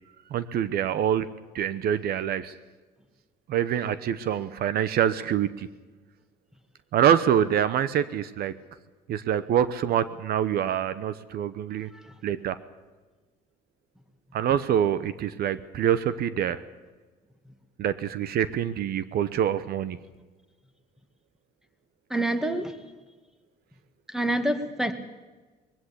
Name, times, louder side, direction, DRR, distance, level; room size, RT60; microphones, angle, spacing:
voice 1, 0.3-1.3 1.5-2.5 3.5-5.7 6.9-8.5 9.1-11.9 12.2-12.6 14.3-16.6 17.8-20.0, right 9 dB, 65° right, 14 dB, 1.0 m, -25 dB
voice 2, 11.8-12.1 22.1-22.8 24.1-24.9, right 1 dB, 5° right, 8 dB, 2.0 m, -27 dB
21.0 x 16.0 x 8.6 m, 1.3 s
cardioid pair, 110°, 17 cm